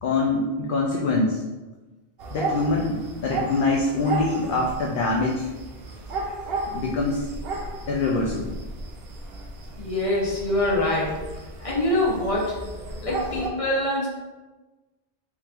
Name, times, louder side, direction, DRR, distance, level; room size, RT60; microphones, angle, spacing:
voice 1, 0.0-1.4 2.3-5.5 6.7-7.3 7.9-8.6, left 3 dB, 65° left, -1 dB, 0.6 m, -24 dB
sound 1, 2.2-13.5, right 3 dB, 75° right, 0.8 m, -34 dB
voice 2, 9.8-11.2 11.6-12.6 13.0-14.1, left 1 dB, 35° left, -4 dB, 1.0 m, -24 dB
3.6 x 3.3 x 3.3 m, 1.2 s
omnidirectional pair, 1.0 m